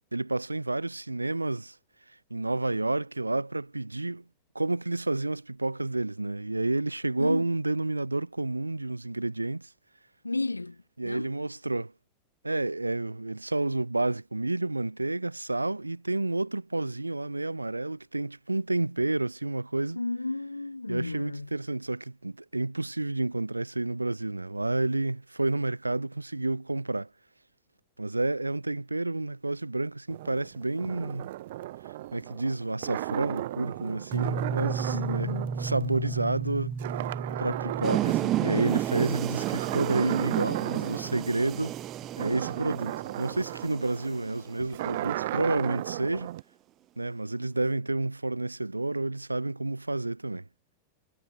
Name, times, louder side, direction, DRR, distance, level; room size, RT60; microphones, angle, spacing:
voice 1, 0.1-1.8 2.3-4.2 4.5-9.7 11.0-11.9 12.4-20.0 20.9-27.1 28.0-31.3 32.1-35.3 35.6-36.8 37.4-41.8 42.2-46.3 47.0-50.4, right 2 dB, 85° right, 3.0 m, -30 dB
voice 2, 7.2-7.5 10.2-11.3 19.9-21.5 34.9-35.5, left 2 dB, 80° left, 7.3 m, -33 dB
sound 1, 30.1-36.5 36.8-38.8 39.3-46.4, right 16 dB, 55° right, 4.7 m, -36 dB
sound 2, 34.1-43.7, right 4 dB, 15° right, 5.6 m, -36 dB
sound 3, 37.8-44.8, right 14 dB, 35° right, 1.6 m, -32 dB
figure-of-eight pair, 90°, 0 cm